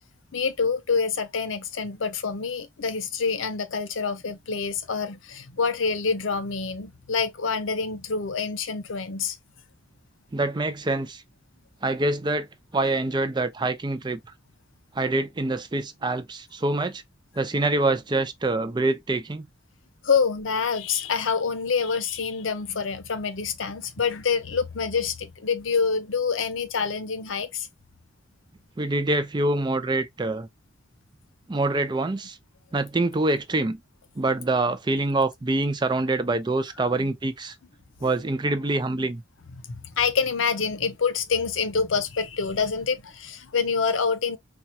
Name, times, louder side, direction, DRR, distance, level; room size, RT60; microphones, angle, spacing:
voice 1, 0.3-9.4 20.0-27.7 36.8-37.1 38.0-38.1 39.7-44.4, left 5 dB, 80° left, 0.7 m, -26 dB
voice 2, 10.3-11.2 11.8-12.5 12.7-14.2 14.9-17.0 17.4-19.5 28.8-30.5 31.5-32.4 32.7-33.8 34.2-37.6 38.0-39.2, right 2 dB, 20° right, 0.4 m, -25 dB
4.4 x 2.3 x 2.7 m
head